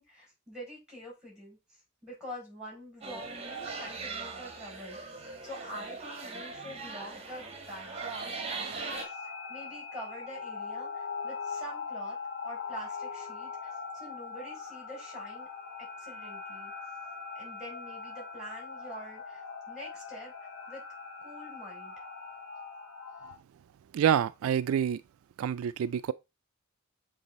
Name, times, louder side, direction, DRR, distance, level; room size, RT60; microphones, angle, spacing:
voice 1, 0.0-12.2 12.4-15.5 16.0-16.7 17.3-20.8 21.2-21.9 23.1-23.3, equal, 5° right, 4.4 m, -46 dB
sound 1, 3.0-9.0, right 4 dB, 30° right, 1.2 m, -40 dB
sound 2, 8.9-23.4, left 5 dB, 75° left, 1.7 m, -41 dB
voice 2, 23.9-25.0 25.4-26.1, right 9 dB, 80° right, 0.3 m, -27 dB
7.2 x 3.3 x 4.1 m
head